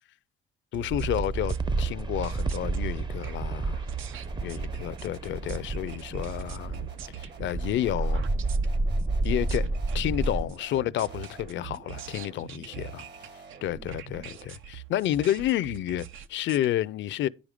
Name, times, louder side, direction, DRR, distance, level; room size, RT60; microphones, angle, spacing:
voice 1, 0.7-3.8 4.4-6.9 7.2-8.3 9.2-13.0 13.6-17.3, left 12 dB, 70° left, 0.5 m, -30 dB
sound 1, 0.7-16.7, right 11 dB, 85° right, 0.7 m, -44 dB
sound 2, 0.9-10.4, right 3 dB, 20° right, 0.6 m, -30 dB
sound 3, 4.2-14.5, right 5 dB, 60° right, 1.6 m, -48 dB
9.7 x 5.1 x 4.9 m
cardioid pair, 90°, 20 cm